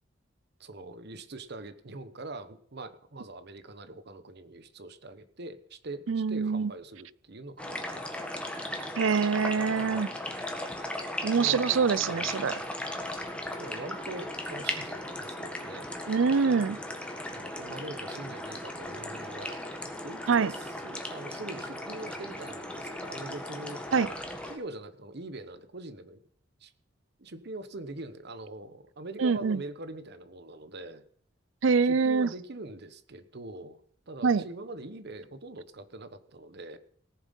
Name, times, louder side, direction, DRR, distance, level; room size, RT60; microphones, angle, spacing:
voice 1, 0.6-8.2 9.7-10.2 11.3-12.3 13.6-15.9 16.5-16.8 17.3-19.6 20.0-23.8 24.5-26.2 26.6-26.7 27.2-31.0 31.8-33.8 34.1-36.8, right 2 dB, 60° right, 1.1 m, -43 dB
voice 2, 6.1-6.7 9.0-10.1 11.2-12.5 16.1-16.8 20.3-20.5 23.9-24.1 29.2-29.6 31.6-32.3 34.2-34.4, right 5 dB, 85° right, 0.5 m, -25 dB
sound 1, 7.6-24.6, left 1 dB, 5° left, 1.8 m, -37 dB
18.0 x 7.4 x 5.4 m
head